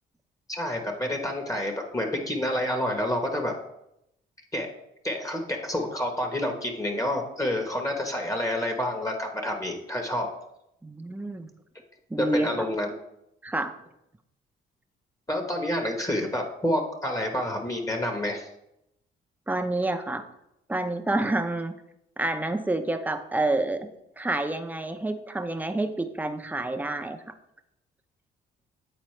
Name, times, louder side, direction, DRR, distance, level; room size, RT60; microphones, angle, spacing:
voice 1, 0.5-3.5 4.5-4.7 5.0-10.3 12.2-12.9 15.3-18.5, left 1 dB, 15° left, 3 dB, 1.1 m, -28 dB
voice 2, 10.8-11.5 12.1-12.7 13.4-13.7 19.5-20.2 20.7-21.7 22.2-23.9 24.2-27.2, right 2 dB, 10° right, 7 dB, 0.6 m, -28 dB
8.8 x 4.1 x 3.2 m, 0.82 s
cardioid pair, 90°, 20 cm